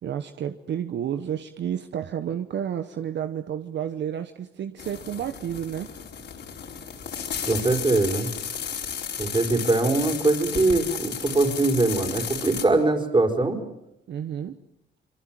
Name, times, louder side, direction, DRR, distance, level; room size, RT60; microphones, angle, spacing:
voice 1, 0.0-5.9 14.1-14.6, right 9 dB, 65° right, 9 dB, 1.2 m, -31 dB
sound 1, 4.8-12.6, left 7 dB, 60° left, 4.7 m, -33 dB
voice 2, 7.5-8.3 9.2-13.6, right 2 dB, 25° right, 6 dB, 4.9 m, -22 dB
26.0 x 24.0 x 7.7 m, 0.82 s
cardioid pair, 90°, 20 cm